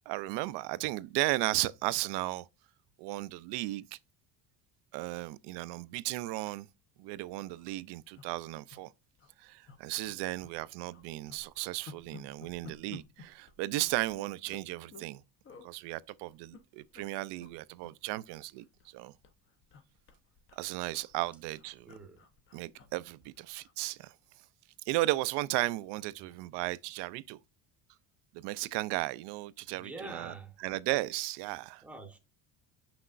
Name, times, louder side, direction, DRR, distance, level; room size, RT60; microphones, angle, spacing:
voice 1, 0.1-2.5 3.0-4.0 4.9-6.7 7.0-8.9 9.4-15.2 15.6-19.1 20.6-21.9 22.5-24.1 24.9-27.4 28.3-30.3 30.6-31.8, right 18 dB, 75° right, 0.5 m, -35 dB
sound 1, 6.7-6.8 7.1-7.2 7.4-7.7 8.1-8.8 9.2-9.3 9.7-10.6 10.9-15.1 15.4-15.7 16.3-17.1 17.4-17.5 17.8-19.0 19.2-23.8 24.1-24.3, left 4 dB, 30° left, 0.7 m, -54 dB
voice 2, 21.9-22.2 26.2-26.3 29.7-30.6 31.8-32.2, right 2 dB, 5° right, 0.8 m, -46 dB
6.5 x 6.0 x 2.4 m
cardioid pair, 160°, 42 cm